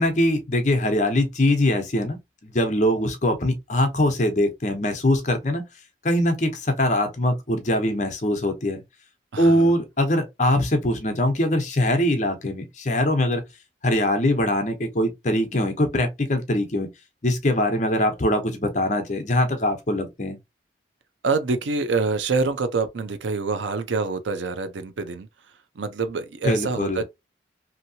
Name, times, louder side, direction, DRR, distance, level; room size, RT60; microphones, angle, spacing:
voice 1, 0.0-5.6 6.0-8.8 9.4-13.4 13.8-16.9 17.2-20.4 26.4-27.0, left 1 dB, 40° left, 0.7 m, -22 dB
voice 2, 9.3-9.7 21.2-25.3 25.8-27.0, right 4 dB, 90° right, 0.6 m, -26 dB
2.9 x 2.7 x 2.7 m
head